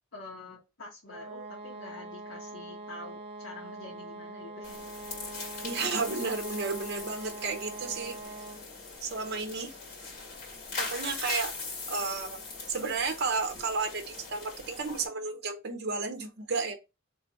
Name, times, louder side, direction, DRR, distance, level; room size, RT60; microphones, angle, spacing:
voice 1, 0.1-4.8, left 2 dB, 80° left, 1.2 m, -47 dB
sound 1, 1.1-8.8, right 2 dB, 30° right, 0.4 m, -43 dB
sound 2, 4.6-15.1, left 3 dB, 45° left, 2.3 m, -41 dB
voice 2, 5.6-8.2 9.0-9.7 10.8-11.5 11.9-12.4 12.7-16.7, right 4 dB, 55° right, 0.7 m, -32 dB
3.4 x 3.3 x 3.0 m
head